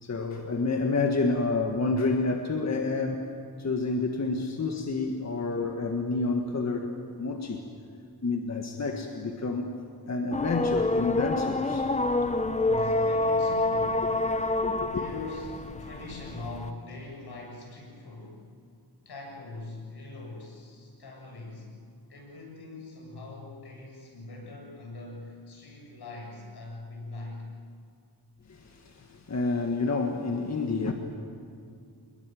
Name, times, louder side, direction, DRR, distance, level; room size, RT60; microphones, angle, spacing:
voice 1, 0.0-3.3 3.6-7.6 8.2-9.8 10.1-11.9 12.2-12.5 14.6-15.0 28.5-30.9, left 3 dB, 45° left, 3 dB, 1.7 m, -29 dB
sound 1, 10.3-16.7, left 2 dB, 20° left, 0.9 m, -27 dB
voice 2, 12.4-14.2 14.7-18.4 19.1-21.7 22.1-27.4, left 2 dB, 80° left, 0 dB, 7.5 m, -42 dB
27.0 x 21.5 x 9.3 m, 2.4 s
wide cardioid pair, 120°, 38 cm